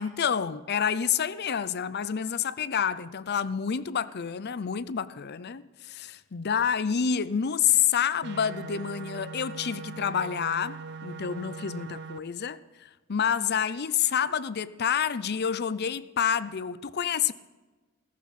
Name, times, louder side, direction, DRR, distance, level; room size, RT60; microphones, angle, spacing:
voice 1, 0.0-17.3, left 8 dB, 55° left, 0.6 m, -28 dB
sound 1, 8.2-12.2, right 4 dB, 55° right, 0.7 m, -40 dB
17.0 x 15.0 x 4.2 m
head